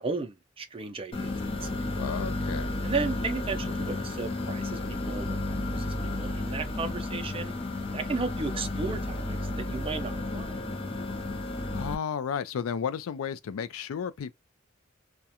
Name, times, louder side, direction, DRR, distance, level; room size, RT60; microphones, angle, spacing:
voice 1, 0.0-1.4 1.6-1.8 2.8-5.4 5.7-7.5 7.9-10.5, right 4 dB, 25° right, 0.4 m, -34 dB
sound 1, 1.1-11.9, left 2 dB, 25° left, 0.5 m, -32 dB
voice 2, 2.0-2.8 11.7-14.3, left 7 dB, 90° left, 0.4 m, -33 dB
2.4 x 2.1 x 2.8 m
head